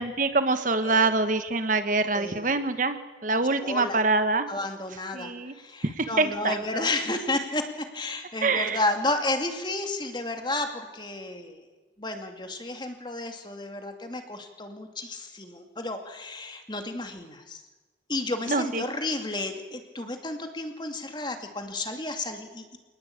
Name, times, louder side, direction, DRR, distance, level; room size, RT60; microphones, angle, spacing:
voice 1, 0.0-3.0 3.2-4.5 5.1-5.5 6.0-6.9 8.4-8.8 18.5-18.8, right 3 dB, 45° right, 9 dB, 1.3 m, -25 dB
voice 2, 2.1-2.5 3.3-4.0 4.5-11.7 12.0-17.6 18.1-22.8, left 2 dB, 25° left, 5 dB, 2.5 m, -32 dB
27.0 x 19.5 x 8.8 m, 1.2 s
head